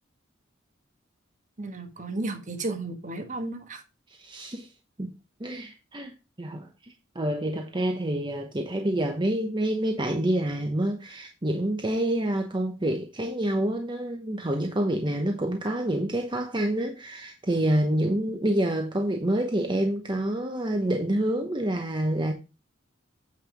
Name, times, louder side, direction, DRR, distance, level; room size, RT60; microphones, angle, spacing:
voice 1, 1.6-3.8, right 2 dB, 40° right, 1.4 m, -33 dB
voice 2, 4.2-4.7 5.0-5.1 5.4-22.3, right 1 dB, 25° right, 0.9 m, -27 dB
8.8 x 5.6 x 5.1 m
head